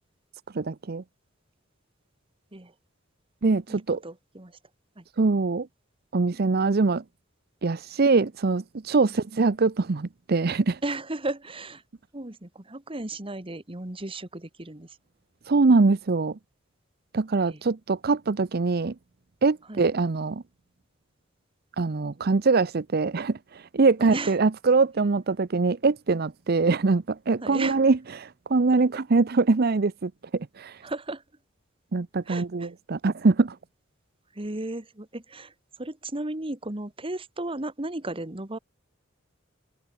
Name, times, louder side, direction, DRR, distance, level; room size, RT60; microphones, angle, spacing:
voice 1, 0.5-1.0 3.4-4.0 5.2-5.7 6.1-7.0 7.6-10.8 15.5-16.4 17.1-18.9 19.4-20.4 21.8-30.8 31.9-33.6, right 3 dB, 50° right, 0.6 m, -23 dB
voice 2, 3.7-4.6 4.9-5.0 9.0-9.2 10.8-11.8 12.1-15.0 17.5-17.6 19.7-19.9 24.0-24.3 27.4-27.8 30.8-31.2 32.2-32.7 34.3-38.6, right 2 dB, 25° right, 1.7 m, -35 dB
head